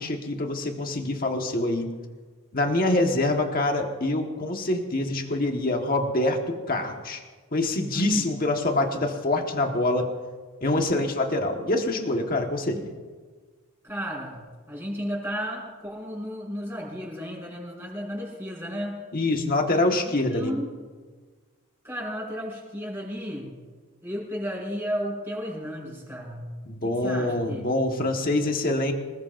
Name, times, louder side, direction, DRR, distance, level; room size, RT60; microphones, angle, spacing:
voice 1, 0.0-1.9 2.5-6.4 6.7-7.2 7.5-10.1 10.6-12.9 19.1-20.5 26.6-28.9, left 2 dB, 40° left, 2 dB, 1.5 m, -25 dB
voice 2, 7.9-8.3 10.7-10.9 13.8-14.4 14.7-19.0 20.3-20.7 21.8-23.5 24.0-26.5 26.8-27.6, equal, 10° right, -4 dB, 6.5 m, -33 dB
26.5 x 20.0 x 2.6 m, 1.4 s
head